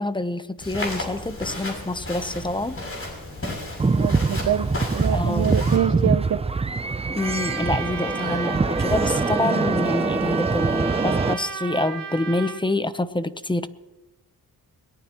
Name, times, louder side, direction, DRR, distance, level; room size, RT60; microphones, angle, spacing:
voice 1, 0.0-2.8 5.1-5.6 7.1-13.7, left 2 dB, 15° left, 12 dB, 0.8 m, -26 dB
Walk footsteps, 0.6-5.8, left 1 dB, 40° left, 7.0 m, -34 dB
sound 1, 3.8-11.3, right 4 dB, 15° right, 0.5 m, -24 dB
voice 2, 3.9-6.4, right 9 dB, 50° right, 7 dB, 0.8 m, -25 dB
Trumpet, 7.2-12.6, right 6 dB, 65° right, 1.7 m, -33 dB
23.0 x 18.5 x 3.1 m, 1.1 s
wide cardioid pair, 100°, 36 cm